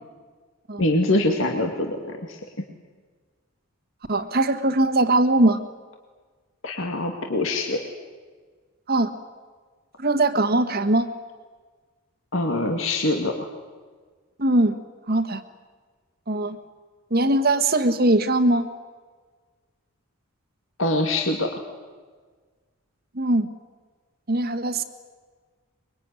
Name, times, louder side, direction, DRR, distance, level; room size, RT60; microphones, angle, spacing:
voice 1, 0.8-2.4 6.6-7.8 12.3-13.5 20.8-21.6, left 2 dB, 65° left, 3 dB, 2.3 m, -24 dB
voice 2, 4.1-5.6 8.9-9.1 10.0-11.1 14.4-14.8 15.1-15.4 16.3-16.6 17.1-18.7 23.1-23.5 24.3-24.8, right 2 dB, 45° right, 9 dB, 1.5 m, -21 dB
24.0 x 22.5 x 9.8 m, 1.5 s
head